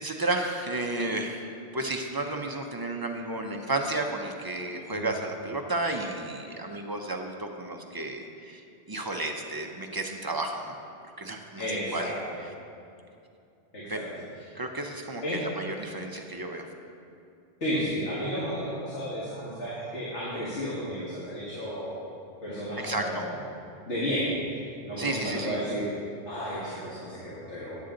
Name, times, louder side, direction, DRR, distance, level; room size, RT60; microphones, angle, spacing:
voice 1, 0.0-8.6 8.9-10.7 11.2-12.1 13.9-14.0 14.5-16.7 22.8-23.2 25.0-25.6, right 2 dB, 30° right, 3 dB, 0.4 m, -32 dB
voice 2, 11.6-12.4 13.7-14.0 15.2-15.4 17.6-21.9 22.4-23.4 23.9-24.3 24.8-25.9 26.3-27.7, equal, 90° left, -8 dB, 1.9 m, -32 dB
9.6 x 8.3 x 3.8 m, 2.6 s
omnidirectional pair, 1.2 m